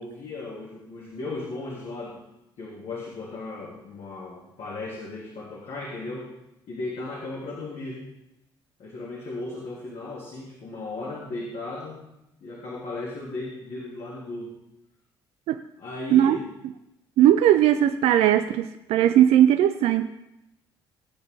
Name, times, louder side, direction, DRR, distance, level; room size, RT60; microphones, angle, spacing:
voice 1, 0.0-2.2 2.6-6.3 6.7-8.1 8.8-12.1 12.4-14.5 15.8-16.4, left 2 dB, 50° left, -5 dB, 3.2 m, -36 dB
voice 2, 17.2-20.1, right 11 dB, 55° right, 9 dB, 0.6 m, -18 dB
16.5 x 8.6 x 3.9 m, 0.87 s
figure-of-eight pair, 50°, 12 cm